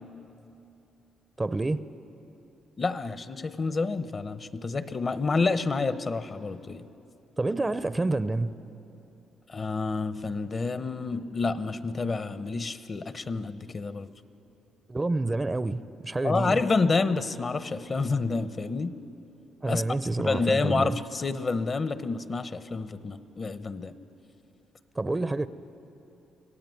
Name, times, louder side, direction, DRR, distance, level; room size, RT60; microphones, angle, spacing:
voice 1, 1.4-1.8 7.4-8.5 14.9-16.6 19.6-21.0 25.0-25.5, right 2 dB, 20° right, 13 dB, 0.6 m, -28 dB
voice 2, 2.8-6.9 9.5-14.1 16.2-18.9 19.7-19.8 20.2-23.9, left 4 dB, 35° left, 12 dB, 0.9 m, -28 dB
24.5 x 17.0 x 9.2 m, 2.9 s
cardioid pair, 90°, 0 cm